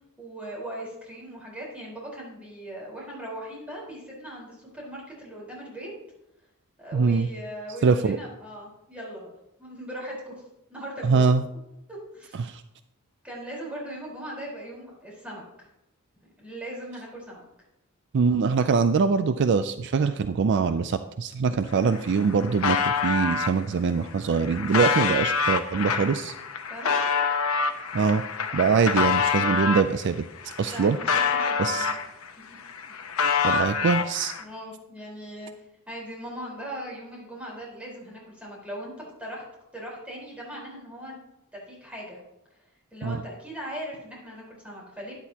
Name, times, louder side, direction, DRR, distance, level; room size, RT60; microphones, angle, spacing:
voice 1, 0.2-5.9 6.8-9.3 9.6-10.4 10.7-11.3 11.9-12.5 13.2-15.7 16.4-17.4 26.7-27.0 30.7-31.9 34.4-35.5 35.9-39.4 39.7-41.2 41.5-42.2 42.9-45.1, right 1 dB, 5° right, -4 dB, 4.3 m, -39 dB
voice 2, 6.9-7.3 7.8-8.2 11.0-11.4 12.4-12.6 18.1-26.3 27.9-28.2 28.5-31.0 31.6-31.9 33.4-34.3 43.0-43.2, right 5 dB, 55° right, 11 dB, 0.4 m, -23 dB
sound 1, 21.6-21.7 21.9-23.5 24.1-29.9 30.4-32.3 32.6-34.4, left 5 dB, 75° left, 1.0 m, -26 dB
12.5 x 10.5 x 2.9 m, 0.87 s
head